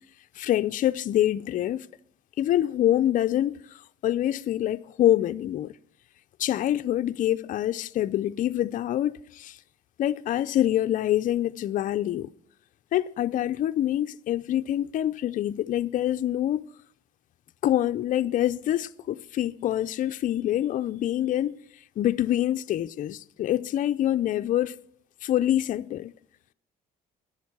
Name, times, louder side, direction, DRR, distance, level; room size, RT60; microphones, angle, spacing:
voice 1, 0.4-1.9 2.4-5.7 6.4-9.6 10.0-12.3 12.9-16.6 17.6-21.6 22.0-24.8 25.2-26.1, left 12 dB, 50° left, 0.5 m, -26 dB
11.0 x 9.0 x 7.2 m
cardioid pair, 110°, 17 cm